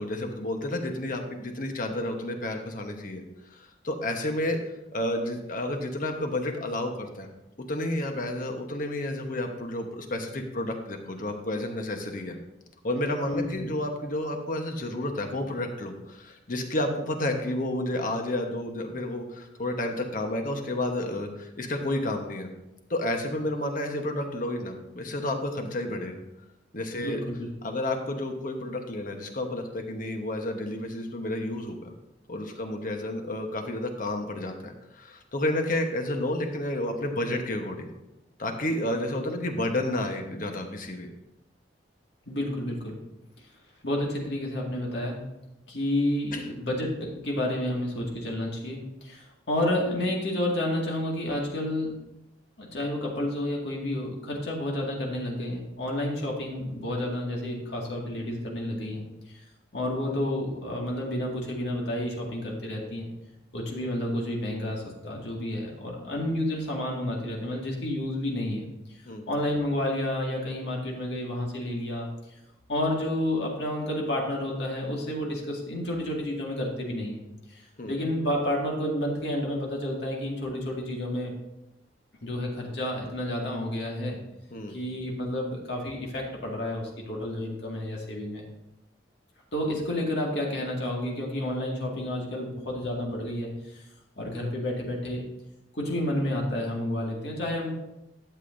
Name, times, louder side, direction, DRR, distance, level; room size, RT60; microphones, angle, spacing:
voice 1, 0.0-3.2 3.5-4.6 4.9-7.3 7.7-12.4 12.8-22.5 22.9-26.2 26.7-27.2 27.6-31.9 32.3-37.9 38.4-41.1 46.3-46.4 69.0-69.2 77.8-77.9 84.5-84.8, left 1 dB, 50° left, 4 dB, 1.2 m, -31 dB
voice 2, 13.3-13.7 26.9-27.5 42.3-43.0 43.8-45.2 45.7-51.9 52.6-59.0 59.7-63.1 63.5-68.7 69.3-72.1 72.7-81.3 82.2-84.2 84.7-88.4 89.5-93.8 94.2-95.3 95.7-97.7, left 1 dB, 70° left, -2 dB, 2.0 m, -30 dB
12.0 x 7.8 x 2.7 m, 0.93 s
head